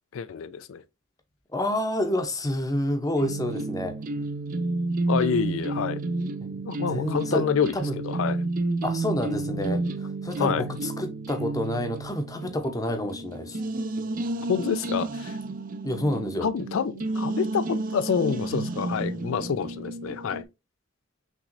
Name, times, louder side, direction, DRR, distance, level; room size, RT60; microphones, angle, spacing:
voice 1, 0.1-0.8 5.1-6.0 6.6-7.7 8.0-8.4 10.4-10.6 14.5-15.4 16.4-20.4, left 7 dB, 70° left, 0.4 m, -27 dB
voice 2, 1.5-4.0 6.4-6.6 6.9-7.5 7.7-8.0 8.8-13.6 15.8-16.5, left 1 dB, 15° left, 0.7 m, -29 dB
sound 1, 3.2-20.4, right 2 dB, 40° right, 0.4 m, -31 dB
5.8 x 3.1 x 2.5 m
head